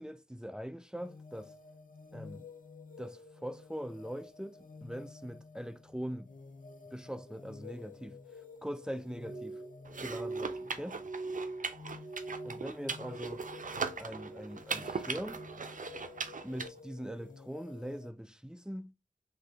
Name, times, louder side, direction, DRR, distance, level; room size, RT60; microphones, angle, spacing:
voice 1, 0.0-1.5 2.1-2.4 3.0-6.3 6.9-8.2 8.6-9.6 10.0-11.0 12.4-13.5 14.0-15.4 16.4-18.9, equal, 5° right, 0.4 m, -42 dB
sound 1, 0.9-18.1, left 4 dB, 75° left, 0.5 m, -52 dB
Glass, 9.1-13.7 14.0-14.6 15.0-15.6 16.2-16.4, right 3 dB, 35° right, 0.8 m, -43 dB
sound 2, 9.9-16.7, right 5 dB, 70° right, 0.5 m, -40 dB
3.4 x 2.7 x 2.5 m
wide cardioid pair, 45°, 14 cm